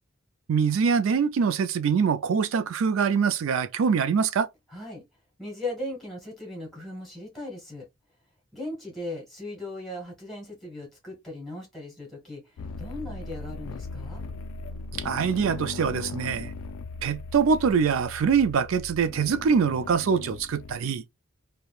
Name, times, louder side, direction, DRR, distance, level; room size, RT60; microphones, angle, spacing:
voice 1, 0.5-4.5 15.0-16.5 17.0-21.0, right 6 dB, 70° right, 0.4 m, -24 dB
voice 2, 4.7-5.0 5.4-7.9 8.5-14.2, left 1 dB, ahead, 1.4 m, -38 dB
sound 1, 12.6-20.8, left 3 dB, 75° left, 0.3 m, -38 dB
3.1 x 2.2 x 2.4 m
head